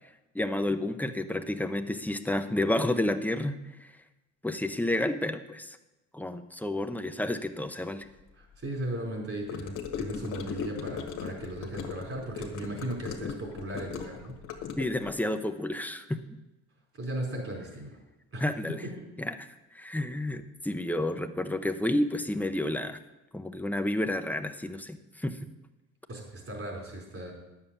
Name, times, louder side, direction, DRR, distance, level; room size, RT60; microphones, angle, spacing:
voice 1, 0.3-3.9 4.4-5.8 6.1-8.1 14.8-16.4 18.4-18.8 19.2-19.4 19.7-23.0 23.3-25.5, left 1 dB, 5° left, 8 dB, 0.8 m, -30 dB
voice 2, 8.4-14.3 17.0-18.0 18.3-18.4 26.1-27.3, right 1 dB, 50° right, -1 dB, 4.6 m, -37 dB
Gurgling / Car passing by / Sink (filling or washing), 9.5-15.2, left 7 dB, 90° left, 1.5 m, -38 dB
10.5 x 7.2 x 7.1 m, 1.0 s
cardioid pair, 90°, 30 cm